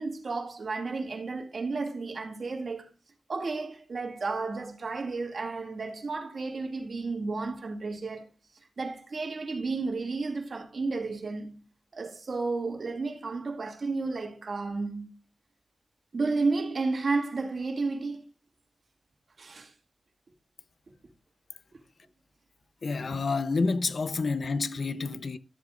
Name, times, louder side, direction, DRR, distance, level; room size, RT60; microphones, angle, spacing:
voice 1, 0.0-2.9 3.3-8.3 8.8-11.6 11.9-15.1 16.1-18.2 19.4-19.7, right 3 dB, 60° right, 2.3 m, -32 dB
voice 2, 22.8-25.4, left 4 dB, 60° left, 0.7 m, -29 dB
13.5 x 7.7 x 2.5 m
wide cardioid pair, 80°, 0 cm